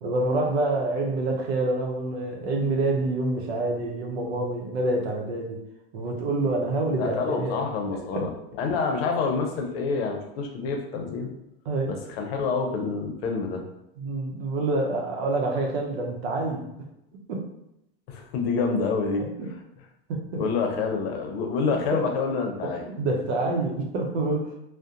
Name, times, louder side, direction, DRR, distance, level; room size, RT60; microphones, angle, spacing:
voice 1, 0.0-5.6 5.9-7.6 8.1-8.2 11.7-11.9 14.0-16.6 17.3-17.5 19.2-19.5 20.1-20.4 21.9-22.0 22.6-24.5, right 2 dB, 75° right, 1 dB, 0.7 m, -27 dB
voice 2, 7.0-8.3 8.6-11.3 11.9-13.6 18.1-19.2 20.4-22.8, left 4 dB, 70° left, 3 dB, 0.7 m, -27 dB
2.6 x 2.1 x 2.4 m, 0.84 s
supercardioid pair, 120°, 32 cm